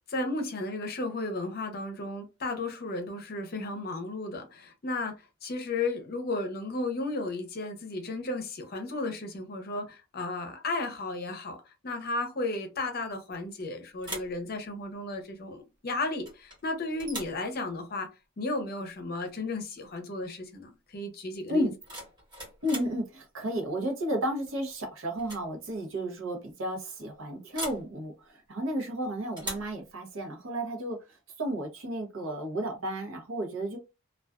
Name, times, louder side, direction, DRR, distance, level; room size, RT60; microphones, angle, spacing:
voice 1, 0.1-5.1 5.4-11.6 11.8-18.1 18.4-21.7, left 2 dB, 45° left, 0.6 m, -34 dB
sound 1, 13.3-13.7 14.0-14.4 16.2-16.6 17.0-17.4 19.3-19.4 19.8-20.1 21.6-23.0 24.5-24.8 25.1-25.5 25.7-25.8 27.5-27.9 29.4-29.8, right 1 dB, 20° right, 0.9 m, -40 dB
voice 2, 22.6-33.8, right 1 dB, 70° right, 0.8 m, -33 dB
2.3 x 2.3 x 2.3 m
head